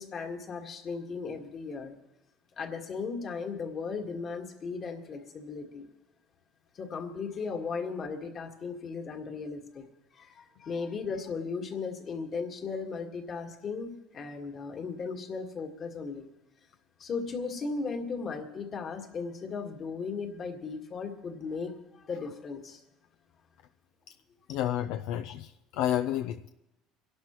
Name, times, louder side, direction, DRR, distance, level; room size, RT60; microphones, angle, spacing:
voice 1, 0.0-1.9 2.6-5.9 6.8-9.8 10.1-16.2 17.0-21.7 22.1-22.8, left 4 dB, 40° left, 4 dB, 1.7 m, -36 dB
voice 2, 24.5-26.5, left 11 dB, 75° left, 8 dB, 0.4 m, -30 dB
26.5 x 11.5 x 3.0 m, 0.90 s
supercardioid pair, 110°, 0 cm